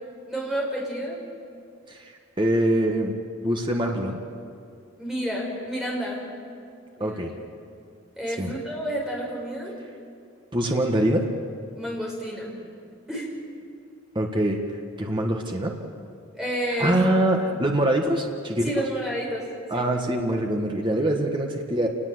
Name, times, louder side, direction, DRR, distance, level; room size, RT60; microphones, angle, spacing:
voice 1, 0.3-1.2 5.0-6.2 7.0-7.2 8.2-9.7 11.8-12.5 13.1-13.3 16.4-16.9 18.6-19.5 19.7-19.9, equal, ahead, -3 dB, 6.1 m, -30 dB
voice 2, 2.4-3.2 3.4-4.2 7.0-7.3 8.4-8.5 10.5-11.3 14.1-14.6 15.0-15.7 16.8-18.8 19.7-21.9, right 1 dB, 20° right, 1 dB, 1.6 m, -24 dB
28.5 x 20.0 x 7.9 m, 2.4 s
head